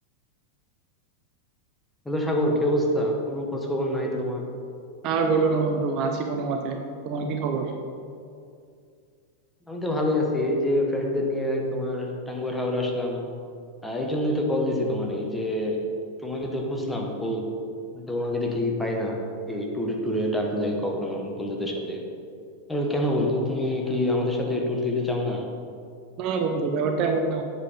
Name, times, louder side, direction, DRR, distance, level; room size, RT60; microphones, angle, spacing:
voice 1, 2.0-4.5 9.7-13.3 13.8-15.9 16.2-17.6 17.9-19.2 19.5-22.0 22.7-25.5, left 1 dB, 5° left, 0 dB, 1.4 m, -26 dB
voice 2, 5.0-6.8 7.0-7.7 26.2-27.4, right 4 dB, 40° right, 4 dB, 0.8 m, -25 dB
8.8 x 7.0 x 5.2 m, 2.4 s
figure-of-eight pair, 90°, 0 cm